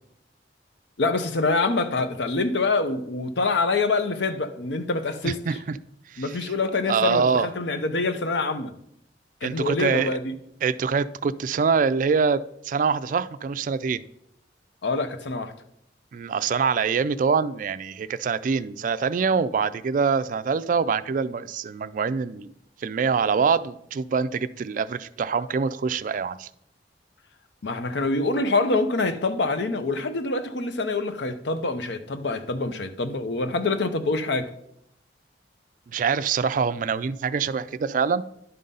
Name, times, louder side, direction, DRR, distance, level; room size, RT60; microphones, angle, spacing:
voice 1, 1.0-5.4 6.2-8.7 9.4-10.3 14.8-15.5 27.6-34.5, left 3 dB, 75° left, 0.7 m, -25 dB
voice 2, 5.2-5.8 6.1-6.4 6.9-7.5 9.4-10.1 10.6-12.4 12.6-14.0 16.1-22.5 22.8-26.5 35.9-38.2, right 5 dB, 45° right, 0.3 m, -24 dB
11.0 x 3.8 x 5.4 m
head